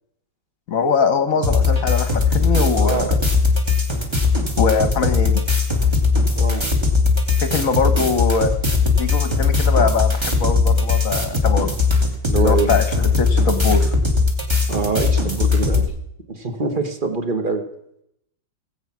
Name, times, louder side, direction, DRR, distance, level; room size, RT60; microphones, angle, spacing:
voice 1, 0.7-3.2 4.6-5.4 7.4-8.5 9.0-11.7 12.3-13.9, left 5 dB, 50° left, 10 dB, 1.3 m, -22 dB
voice 2, 1.3-1.7 2.8-3.1 6.3-6.6 12.3-12.8 14.7-15.9 16.3-17.6, right 4 dB, 30° right, 6 dB, 1.3 m, -24 dB
sound 1, 1.4-15.8, left 4 dB, 15° right, 1.7 m, -19 dB
17.5 x 8.1 x 6.0 m, 0.77 s
omnidirectional pair, 2.0 m